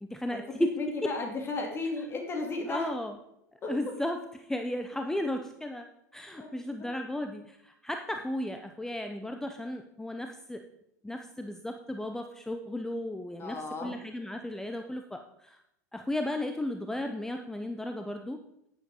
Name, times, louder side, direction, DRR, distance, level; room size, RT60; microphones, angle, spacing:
voice 1, 0.0-0.7 1.0-1.1 2.7-3.2 3.7-5.9 6.1-10.6 11.0-15.6 15.9-18.4, left 1 dB, 5° left, 5 dB, 0.8 m, -34 dB
voice 2, 0.8-2.9 3.6-3.7 6.3-6.5 13.4-13.9, left 3 dB, 25° left, 1 dB, 2.9 m, -34 dB
10.5 x 10.0 x 3.8 m, 0.77 s
figure-of-eight pair, 85°, 10 cm